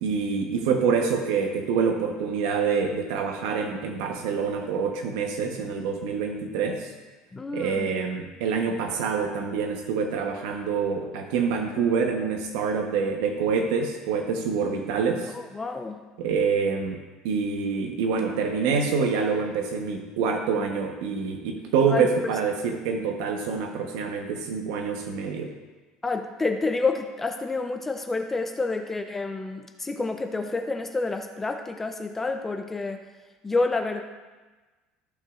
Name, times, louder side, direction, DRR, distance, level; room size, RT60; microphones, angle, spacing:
voice 1, 0.0-6.9 7.5-15.3 16.2-17.0 17.2-25.5, right 5 dB, 85° right, 3 dB, 1.0 m, -26 dB
voice 2, 7.3-7.9 15.3-16.0 21.9-22.1 26.0-33.0 33.4-34.0, left 3 dB, 10° left, 5 dB, 0.5 m, -28 dB
14.0 x 6.0 x 2.5 m, 1.2 s
cardioid pair, 150°, 2 cm